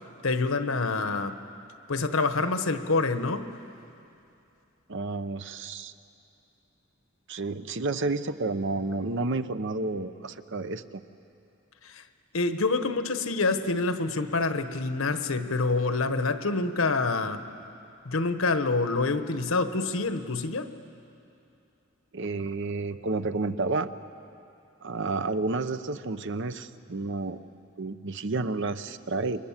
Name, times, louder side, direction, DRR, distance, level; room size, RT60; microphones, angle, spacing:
voice 1, 0.2-1.4 1.9-3.5 11.8-12.0 12.3-17.4 18.0-20.7, left 3 dB, 85° left, 9 dB, 1.2 m, -27 dB
voice 2, 4.9-5.9 7.3-11.0 22.1-23.9 24.8-27.4 27.8-29.5, right 3 dB, 60° right, 11 dB, 0.8 m, -30 dB
28.5 x 23.0 x 7.4 m, 2.7 s
head